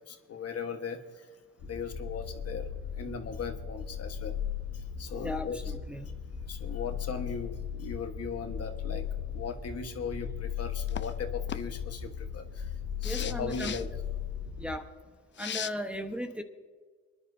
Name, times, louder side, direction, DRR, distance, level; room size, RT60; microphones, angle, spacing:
voice 1, 0.1-1.3 1.6-2.7 3.0-4.4 4.7-5.7 6.4-9.1 9.3-12.7 13.0-13.9, left 5 dB, 55° left, 5 dB, 1.4 m, -38 dB
sound 1, 1.6-14.8, left 8 dB, 75° left, 2.0 m, -37 dB
voice 2, 5.2-5.6 5.9-6.1 13.0-13.7 14.6-14.9 15.4-16.4, equal, 5° right, 3 dB, 1.1 m, -36 dB
sound 2, 10.9-11.1 11.5-11.6 13.0-13.8 15.4-15.7, left 9 dB, 40° left, 0.5 m, -37 dB
28.5 x 10.5 x 2.7 m, 1.5 s
cardioid pair, 90°, 30 cm